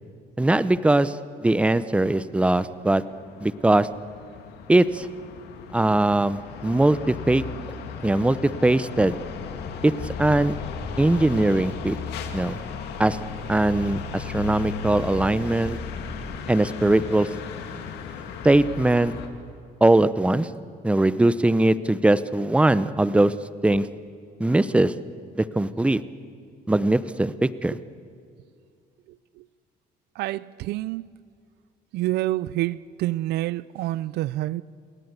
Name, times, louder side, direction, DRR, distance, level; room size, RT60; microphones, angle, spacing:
voice 1, 0.4-1.2 1.4-3.0 3.4-3.9 4.7-5.1 5.7-7.4 8.0-9.1 9.8-10.5 11.0-12.0 12.3-12.6 13.0-13.2 13.5-15.8 16.5-17.3 18.4-19.1 19.8-20.5 20.8-23.3 23.6-23.9 24.4-24.9 25.4-26.0 26.7-27.7, right 2 dB, 5° right, 0.7 m, -20 dB
sound 1, 2.2-19.3, left 7 dB, 80° left, 2.4 m, -37 dB
sound 2, 9.0-16.4, left 3 dB, 25° left, 2.1 m, -40 dB
voice 2, 30.2-31.1 31.9-34.6, right 16 dB, 80° right, 0.5 m, -27 dB
28.5 x 17.0 x 8.2 m
cardioid pair, 110°, 17 cm